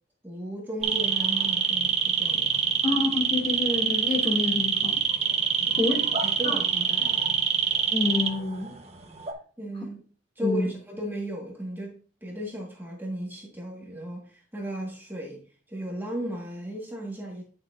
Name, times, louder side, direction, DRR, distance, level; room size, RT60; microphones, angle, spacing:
voice 1, 0.2-2.7 5.6-7.2 9.6-10.0 10.4-15.4 15.7-17.4, right 1 dB, 10° right, 1.6 m, -36 dB
sound 1, 0.8-8.7 9.0-9.3, right 6 dB, 35° right, 1.0 m, -25 dB
voice 2, 2.8-5.0 5.8-6.0 6.4-6.6 7.9-8.7 10.4-10.7, left 2 dB, 30° left, 2.3 m, -27 dB
9.4 x 6.7 x 2.5 m
head